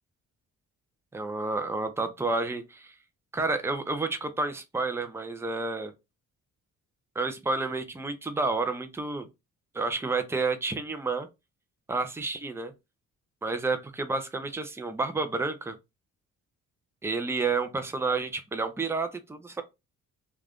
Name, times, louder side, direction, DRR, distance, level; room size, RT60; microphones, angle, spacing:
voice 1, 1.1-2.9 3.3-5.9 7.2-9.3 9.7-11.3 11.9-12.7 13.4-15.8 17.0-19.6, right 3 dB, 10° right, 0.5 m, -30 dB
2.5 x 2.2 x 3.4 m
cardioid pair, 90°, 30 cm